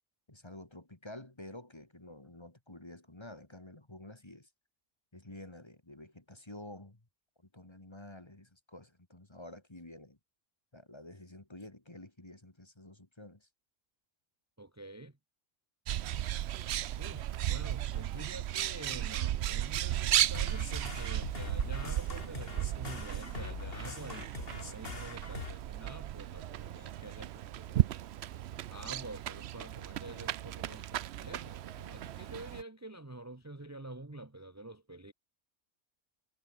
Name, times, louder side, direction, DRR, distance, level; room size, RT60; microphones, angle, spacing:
voice 1, 0.3-4.5 5.1-7.0 7.4-10.2 10.7-13.5, left 1 dB, 20° left, 2.0 m, -50 dB
voice 2, 14.6-15.1 17.0-27.9 28.7-35.1, right 2 dB, 15° right, 1.1 m, -48 dB
Bird, 15.9-32.6, right 12 dB, 65° right, 0.8 m, -35 dB
sound 1, 20.2-25.5, left 3 dB, 45° left, 2.7 m, -43 dB
omnidirectional pair, 1.3 m